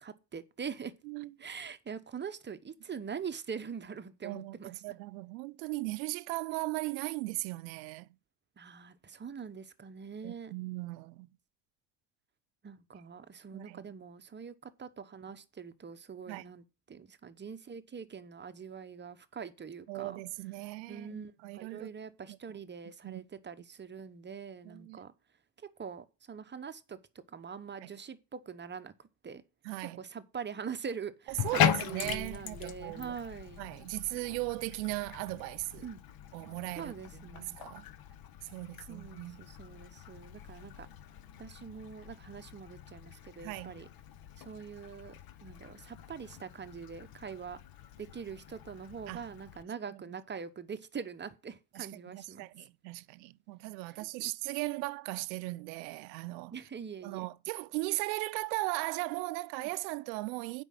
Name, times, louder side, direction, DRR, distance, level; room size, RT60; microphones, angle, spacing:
voice 1, 0.0-0.9 1.4-4.8 8.6-10.5 12.6-20.2 20.9-25.1 25.8-27.0 27.3-28.9 29.2-29.4 30.0-33.6 35.8-36.0 36.8-37.6 38.9-40.9 41.4-43.9 44.4-45.1 45.4-47.6 48.0-52.5 53.9-54.3 56.5-57.3 59.6-59.7, right 6 dB, 20° right, 1.0 m, -43 dB
voice 2, 4.2-8.1 10.2-11.3 13.5-13.8 16.3-16.4 19.9-21.9 22.3-22.4 23.0-23.2 24.6-25.0 27.8-27.9 29.6-30.0 31.4-33.2 33.6-35.9 36.3-37.8 38.5-39.5 43.4-43.8 49.1-49.2 49.9-50.2 51.7-56.5 57.0-60.6, right 22 dB, 80° right, 0.7 m, -38 dB
Bathtub (filling or washing), 31.3-49.6, left 10 dB, 45° left, 1.0 m, -39 dB
8.1 x 5.4 x 7.5 m
supercardioid pair, 90°, 50 cm